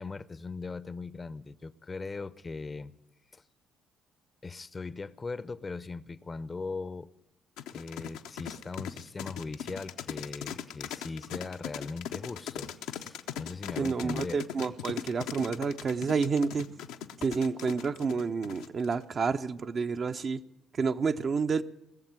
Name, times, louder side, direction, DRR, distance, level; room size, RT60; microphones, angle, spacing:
voice 1, 0.0-2.9 3.3-3.4 4.4-7.1 7.7-14.4, left 4 dB, 30° left, 0.6 m, -39 dB
sound 1, 7.6-19.0, left 9 dB, 75° left, 0.7 m, -39 dB
voice 2, 13.8-16.7 17.2-20.4 20.7-21.6, right 5 dB, 50° right, 0.7 m, -29 dB
19.5 x 7.3 x 9.5 m
hypercardioid pair, 50°, 0 cm